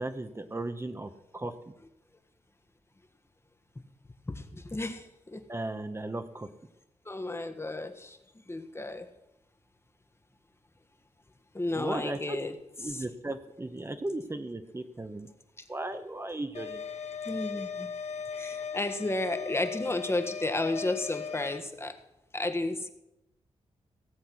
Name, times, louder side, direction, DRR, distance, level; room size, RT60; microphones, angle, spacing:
voice 1, 0.0-1.5 5.5-6.5 11.7-12.4 12.8-15.3 15.7-16.8, right 2 dB, 20° right, 8 dB, 1.1 m, -36 dB
voice 2, 4.3-5.5 7.0-8.2 8.5-9.1 11.5-12.6 12.8-13.0 17.2-17.9 18.3-22.0 22.3-22.9, left 2 dB, 20° left, 7 dB, 1.5 m, -33 dB
sound 1, 16.5-21.6, left 7 dB, 75° left, 1.5 m, -38 dB
17.5 x 7.7 x 6.3 m, 0.88 s
cardioid pair, 75°, 12 cm